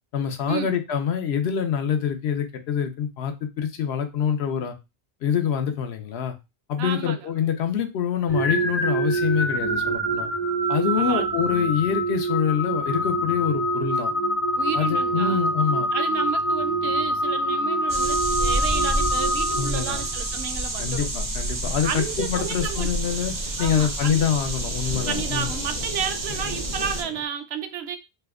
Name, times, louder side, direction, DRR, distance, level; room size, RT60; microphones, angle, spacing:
voice 1, 0.1-4.7 5.2-6.3 6.7-10.3 10.7-14.1 14.7-15.9 19.5-20.0 20.8-23.3 23.6-25.5, left 8 dB, 80° left, 0.9 m, -25 dB
voice 2, 6.8-7.5 11.0-11.2 14.6-15.4 15.9-21.1 21.8-22.9 23.6-24.3 25.1-28.0, right 8 dB, 75° right, 0.8 m, -32 dB
sound 1, 8.3-20.3, right 1 dB, 15° left, 0.6 m, -25 dB
sound 2, 17.9-27.0, right 2 dB, 35° right, 0.3 m, -29 dB
sound 3, 21.6-27.2, left 6 dB, 55° left, 0.6 m, -39 dB
2.7 x 2.2 x 3.5 m
omnidirectional pair, 1.1 m